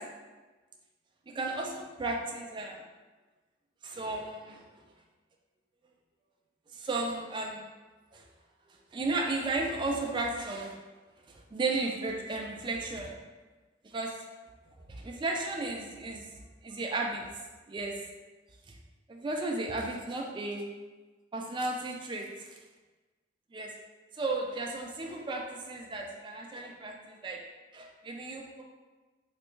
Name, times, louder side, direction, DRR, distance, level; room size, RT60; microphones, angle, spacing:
voice 1, 1.3-2.8 3.8-4.6 6.7-7.7 8.1-8.2 8.9-10.7 11.3-13.1 13.8-14.1 14.9-16.3 16.6-17.2 17.7-17.9 18.7-18.8 19.1-20.6 21.3-22.5 23.5-23.7 24.1-27.4 27.7-28.6, right 2 dB, 25° right, 0 dB, 0.3 m, -34 dB
3.3 x 2.6 x 3.0 m, 1.3 s
head